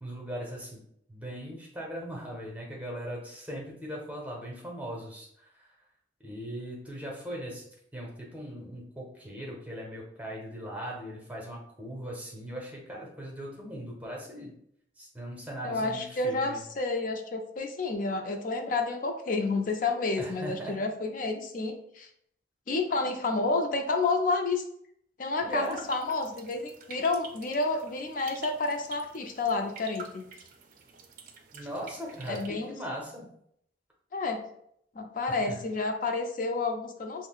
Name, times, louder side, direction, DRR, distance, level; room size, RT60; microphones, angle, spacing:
voice 1, 0.0-0.8 1.1-5.7 6.2-14.5 15.0-16.6 20.2-20.8 25.4-25.8 31.5-33.3 35.3-35.6, equal, 10° right, -3 dB, 0.8 m, -39 dB
voice 2, 15.6-22.1 22.7-24.6 25.2-30.2 32.3-32.7 34.1-34.4 34.9-37.3, left 3 dB, 50° left, 4 dB, 0.5 m, -30 dB
sound 1, 25.5-32.5, right 5 dB, 50° right, 0.4 m, -48 dB
5.6 x 2.1 x 2.3 m, 0.70 s
head